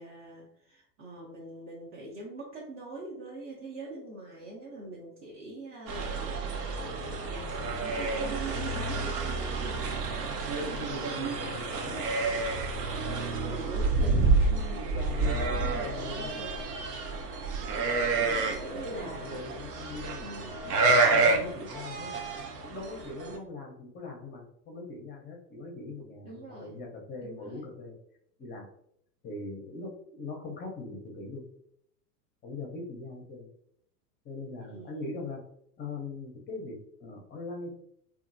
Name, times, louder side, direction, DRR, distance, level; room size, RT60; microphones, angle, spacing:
voice 1, 0.0-9.8 13.5-14.9 15.2-16.6 17.6-17.8 18.2-19.4 20.2-20.6 21.3-21.6 26.2-26.8 27.2-27.7 34.6-35.1, right 1 dB, 25° right, -4 dB, 0.5 m, -44 dB
sound 1, 5.9-23.4, right 3 dB, 75° right, 0.8 m, -29 dB
voice 2, 10.6-12.0 12.3-12.4 14.8-16.4 18.1-18.5 18.8-20.5 20.8-22.1 22.6-28.0 28.4-28.7 29.2-31.4 32.4-33.5 34.2-35.4 35.8-37.7, left 3 dB, 20° left, 0 dB, 0.6 m, -41 dB
2.8 x 2.4 x 2.6 m, 0.69 s
hypercardioid pair, 110°, 48 cm